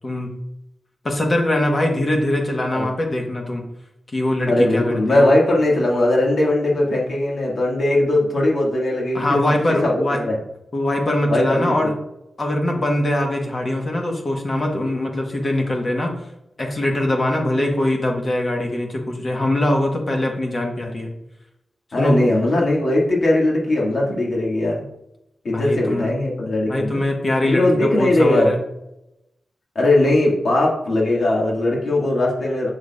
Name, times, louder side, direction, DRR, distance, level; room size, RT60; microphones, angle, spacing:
voice 1, 1.0-3.6 4.1-5.3 9.1-10.2 10.7-11.9 12.4-16.3 16.6-21.1 22.0-22.3 25.5-26.1 26.7-28.6, left 1 dB, 35° left, 1 dB, 1.3 m, -22 dB
voice 2, 4.5-9.5 9.8-10.4 11.3-11.7 21.9-24.8 25.4-27.1 27.4-28.5 29.8-32.7, left 1 dB, 60° left, -2 dB, 2.0 m, -19 dB
6.6 x 6.3 x 2.4 m, 0.83 s
wide cardioid pair, 125°, 0 cm